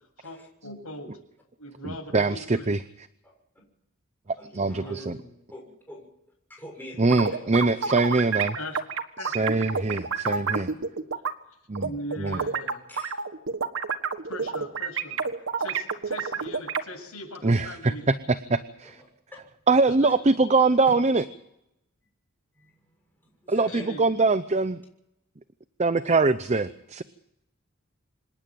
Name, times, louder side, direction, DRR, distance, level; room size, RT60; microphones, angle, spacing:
voice 1, 0.2-1.1 1.6-2.7 4.7-5.3 8.6-8.8 9.2-9.6 11.8-13.1 14.3-15.2 15.6-18.1 19.9-20.0 23.7-24.0, left 1 dB, 75° left, 2 dB, 7.7 m, -40 dB
voice 2, 1.8-2.8 4.5-5.2 7.0-8.5 9.2-10.7 11.7-11.9 12.2-12.4 17.4-19.0 19.7-21.2 23.5-24.8 25.8-27.0, right 3 dB, 30° right, 12 dB, 0.7 m, -23 dB
voice 3, 4.3-5.0 5.5-6.1 6.5-7.5 7.7-8.1 12.9-13.2 18.8-19.1 20.1-20.2 22.5-22.8 23.2-23.9 26.0-26.1, left 1 dB, 10° left, -1 dB, 6.7 m, -45 dB
sound 1, 7.0-11.3 11.7-16.8, right 5 dB, 60° right, 1.5 m, -29 dB
26.5 x 10.5 x 9.3 m, 0.80 s
head